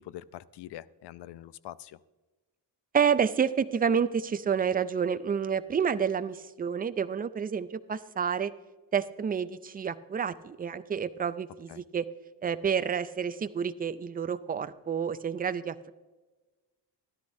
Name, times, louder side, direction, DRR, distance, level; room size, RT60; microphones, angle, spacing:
voice 1, 0.0-2.0 11.7-11.8, left 13 dB, 70° left, 17 dB, 0.5 m, -44 dB
voice 2, 2.9-8.5 8.9-12.1 12.4-15.9, right 7 dB, 25° right, 13 dB, 0.3 m, -29 dB
13.5 x 12.0 x 2.6 m, 1.2 s
wide cardioid pair, 145°, 43 cm